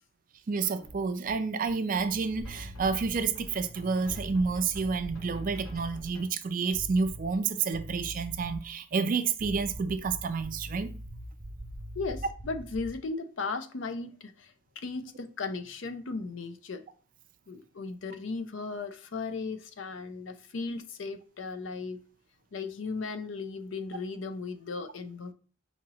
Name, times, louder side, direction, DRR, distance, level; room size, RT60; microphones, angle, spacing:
voice 1, 0.5-10.9, right 5 dB, 40° right, 0.3 m, -29 dB
sound 1, 0.8-6.3, equal, 85° left, 1.3 m, -47 dB
sound 2, 2.4-3.4 4.0-6.0 6.7-7.5 7.7-8.7 9.4-13.0, equal, 5° right, 0.6 m, -42 dB
voice 2, 12.0-16.8 17.5-22.1 22.5-25.3, left 4 dB, 60° left, 0.5 m, -36 dB
5.3 x 2.8 x 2.8 m
head